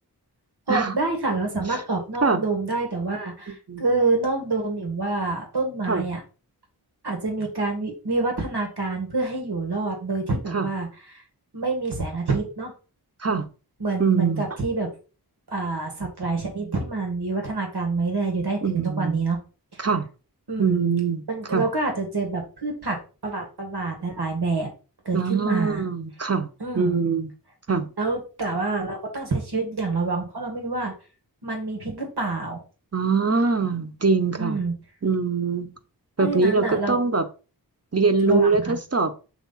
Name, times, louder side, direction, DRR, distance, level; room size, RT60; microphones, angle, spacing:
voice 1, 0.7-6.2 7.0-11.2 11.5-12.7 13.8-14.9 15.5-19.4 19.7-19.9 20.5-20.8 21.3-24.7 25.1-25.8 26.6-27.0 28.0-30.9 31.4-32.6 34.4-34.7 36.2-37.0 38.3-38.8, right 3 dB, 80° right, 1.8 m, -27 dB
voice 2, 14.0-14.4 18.6-19.2 19.8-20.0 20.6-21.2 21.5-21.6 25.1-26.5 26.7-27.3 27.7-27.9 32.9-34.6 35.0-35.7 36.2-37.2 37.9-39.1, right 4 dB, 40° right, 1.0 m, -23 dB
7.3 x 3.3 x 4.1 m
wide cardioid pair, 50°, 39 cm